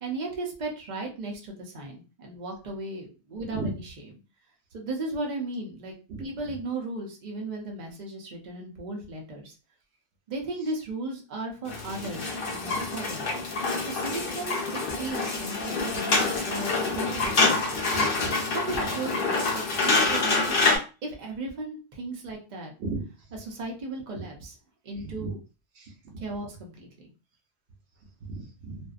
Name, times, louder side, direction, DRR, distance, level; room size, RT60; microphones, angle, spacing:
voice 1, 0.0-3.9 4.7-9.5 10.3-13.3 13.8-17.9 18.5-19.1 19.5-20.6 21.0-22.7 23.4-24.5 24.8-25.4 26.2-27.1, right 2 dB, 50° right, 0 dB, 0.7 m, -36 dB
sound 1, 11.7-20.8, left 3 dB, 60° left, 0.9 m, -26 dB
voice 2, 17.7-18.4 22.8-23.0 24.1-24.2 25.0-25.3 25.8-26.2 28.3-28.8, right 3 dB, 85° right, 1 dB, 1.0 m, -36 dB
2.6 x 2.2 x 2.4 m, 0.33 s
omnidirectional pair, 1.1 m